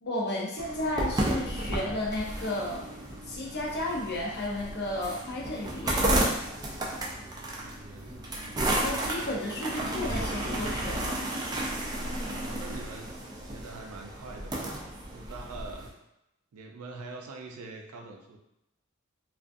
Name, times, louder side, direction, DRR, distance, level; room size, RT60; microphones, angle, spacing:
voice 1, 0.0-2.8 3.2-6.1 8.7-11.2, left 1 dB, 50° left, -3 dB, 0.6 m, -33 dB
sound 1, 0.6-15.9, right 1 dB, 20° right, 0.3 m, -32 dB
voice 2, 7.4-9.0 12.4-13.1 13.4-14.8 15.1-15.9 16.5-18.4, right 3 dB, 85° right, 3 dB, 0.4 m, -44 dB
2.4 x 2.3 x 2.5 m, 0.87 s
head